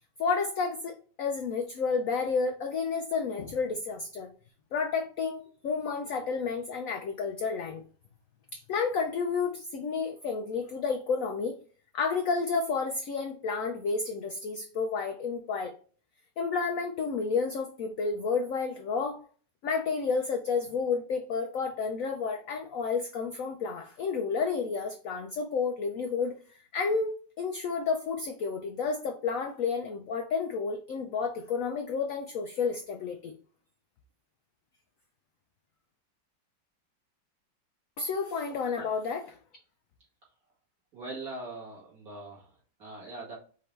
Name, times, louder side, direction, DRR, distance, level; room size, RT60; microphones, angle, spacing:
voice 1, 0.2-4.3 4.7-7.8 8.5-11.6 11.9-15.7 16.4-19.2 19.6-33.3 38.0-39.4, left 5 dB, 75° left, 4 dB, 0.8 m, -31 dB
voice 2, 40.9-43.4, right 2 dB, 50° right, -7 dB, 2.5 m, -42 dB
5.1 x 2.9 x 3.3 m, 0.41 s
omnidirectional pair, 1.9 m